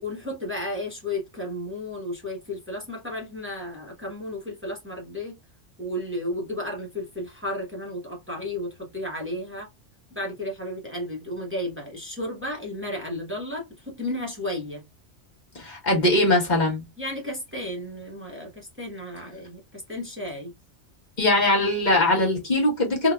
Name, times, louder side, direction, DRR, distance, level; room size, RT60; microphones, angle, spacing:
voice 1, 0.0-5.4 5.8-9.7 10.1-14.8 17.0-20.5, left 1 dB, 10° right, 1.0 m, -33 dB
voice 2, 15.5-16.8 21.2-23.1, left 1 dB, 40° left, 1.2 m, -21 dB
3.8 x 2.7 x 2.3 m
omnidirectional pair, 1.2 m